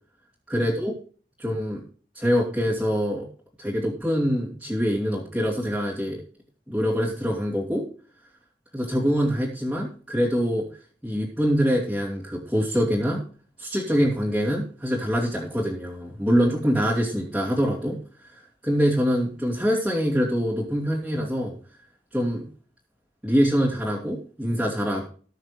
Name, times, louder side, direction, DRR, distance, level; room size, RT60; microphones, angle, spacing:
voice 1, 0.5-0.9 1.4-1.8 2.1-3.3 3.6-6.2 6.7-7.9 8.7-10.7 11.0-13.2 13.6-18.0 18.6-21.5 22.1-22.4 23.2-25.1, equal, 5° right, -7 dB, 2.7 m, -24 dB
19.0 x 6.6 x 3.3 m, 0.42 s
head